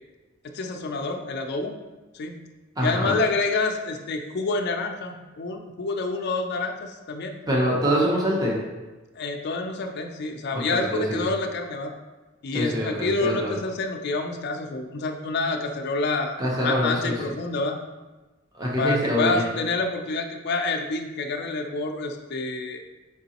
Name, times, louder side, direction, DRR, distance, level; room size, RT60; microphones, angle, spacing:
voice 1, 0.5-1.8 2.1-2.3 2.8-7.4 9.1-11.9 12.4-17.8 18.8-22.8, left 3 dB, 55° left, 3 dB, 0.4 m, -28 dB
voice 2, 2.8-3.1 7.5-8.6 10.7-11.2 12.5-13.5 16.4-17.1 18.5-19.4, equal, 20° right, -4 dB, 0.8 m, -24 dB
4.7 x 3.8 x 2.9 m, 1.2 s
head